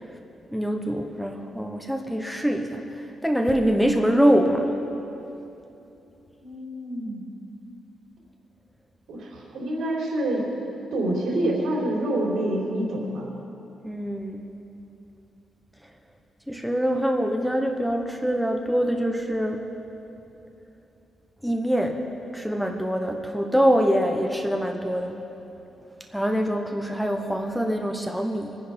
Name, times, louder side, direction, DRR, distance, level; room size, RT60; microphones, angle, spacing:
voice 1, 0.5-4.7 13.8-14.5 16.5-19.6 21.4-22.0 22.3-25.2 26.1-28.6, equal, ahead, 3 dB, 0.9 m, -24 dB
voice 2, 6.4-7.2 9.1-10.5 10.9-13.3, right 1 dB, 85° right, -2 dB, 3.9 m, -27 dB
23.5 x 10.0 x 5.2 m, 2.8 s
wide cardioid pair, 160°, 0 cm